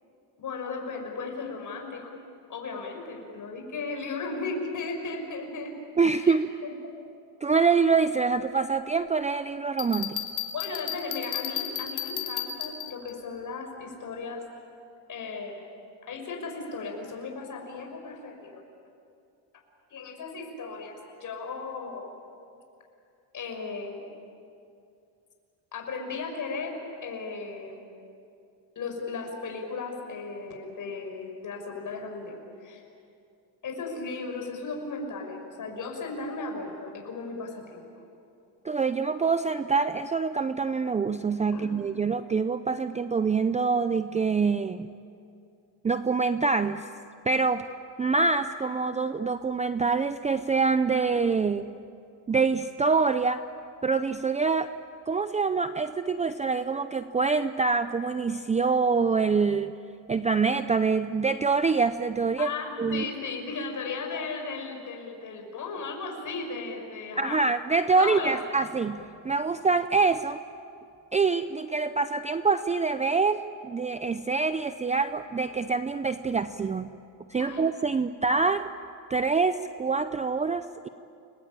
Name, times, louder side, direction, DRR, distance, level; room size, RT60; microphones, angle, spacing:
voice 1, 0.4-2.2 2.5-5.7 6.1-6.7 10.5-14.4 15.1-15.6 16.0-18.6 19.9-22.1 23.3-24.0 25.7-27.8 28.8-32.8 33.6-37.9 41.5-41.8 62.4-67.4 68.0-68.4 77.4-77.6 77.9-78.2, left 4 dB, 40° left, 2 dB, 6.1 m, -36 dB
voice 2, 6.0-6.5 7.4-10.2 38.6-44.9 45.8-46.9 47.3-47.7 48.0-51.7 52.3-53.4 53.8-54.7 55.1-59.7 60.1-62.5 62.8-63.0 67.2-70.4 71.1-76.9 77.3-78.7 79.1-80.9, right 4 dB, 15° right, 11 dB, 0.5 m, -25 dB
Bell, 9.8-13.1, left 10 dB, 85° left, 2.5 m, -33 dB
30.0 x 21.0 x 8.9 m, 2.5 s
cardioid pair, 120°, 46 cm